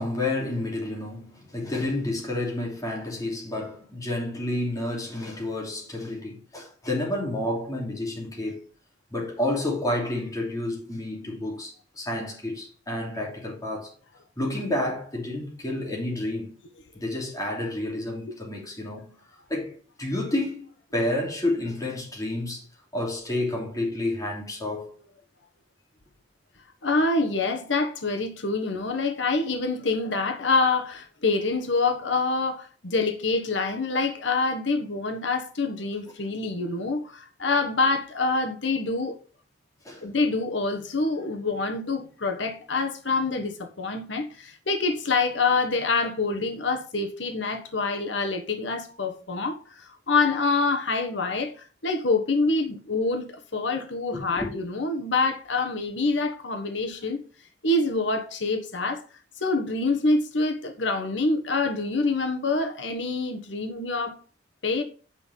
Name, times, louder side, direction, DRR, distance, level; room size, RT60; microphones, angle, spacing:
voice 1, 0.0-8.6 9.1-13.9 14.4-16.5 16.9-19.1 19.5-20.6 20.9-22.6 22.9-24.9 39.8-40.0 54.1-54.5, left 1 dB, 20° left, 3.1 m, -30 dB
voice 2, 26.8-39.2 40.0-57.2 57.6-59.0 59.4-64.1 64.6-64.8, left 3 dB, 85° left, 1.3 m, -26 dB
9.0 x 5.5 x 5.4 m
head